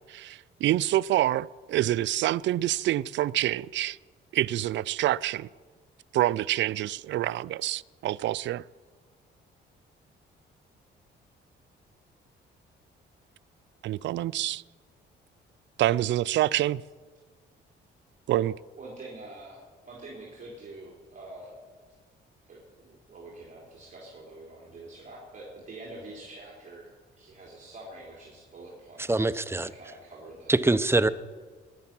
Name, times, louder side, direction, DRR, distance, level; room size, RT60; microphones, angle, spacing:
voice 1, 0.0-4.0 4.3-5.5 6.1-8.6 13.8-14.6 15.8-16.8 18.3-18.5, right 14 dB, 70° right, 0.4 m, -27 dB
voice 2, 18.7-21.6 22.5-26.9 27.2-29.3 29.6-30.6, right 2 dB, 40° right, 3.7 m, -46 dB
voice 3, 29.1-29.7 30.5-31.1, right 2 dB, 10° right, 0.7 m, -23 dB
20.0 x 11.0 x 6.0 m
cardioid pair, 90°, 20 cm